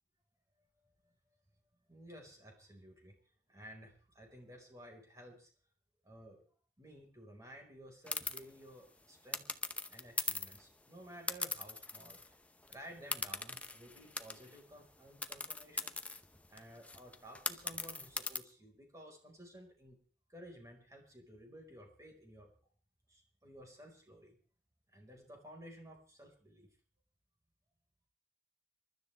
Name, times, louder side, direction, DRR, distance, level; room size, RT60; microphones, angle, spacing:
voice 1, 1.9-3.1 3.5-5.5 6.0-6.4 6.8-9.5 9.9-12.4 12.7-16.0 16.5-20.0 20.3-22.5 23.1-24.4 24.9-26.7, equal, 20° right, 1 dB, 5.0 m, -54 dB
sound 1, 8.1-8.4 9.3-10.6 11.3-12.3 12.6-12.7 13.1-14.6 15.2-18.4, left 3 dB, 10° left, 0.8 m, -40 dB
27.0 x 12.5 x 3.5 m, 0.42 s
head